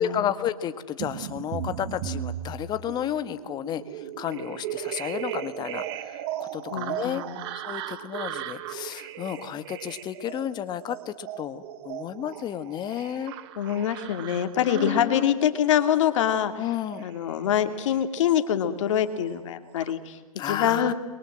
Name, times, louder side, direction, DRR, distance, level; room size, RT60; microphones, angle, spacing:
voice 1, 0.0-7.2 7.5-13.3 14.7-15.4 16.6-17.1 20.4-20.9, left 10 dB, 25° left, 12 dB, 1.6 m, -32 dB
sound 1, 1.0-18.7 19.1-19.9, right 11 dB, 45° right, 1.9 m, -37 dB
voice 2, 6.7-7.4 13.6-16.6 17.0-20.2 20.4-20.9, left 9 dB, 55° left, 9 dB, 2.7 m, -25 dB
29.0 x 23.0 x 7.6 m, 1.4 s
hypercardioid pair, 125°, 18 cm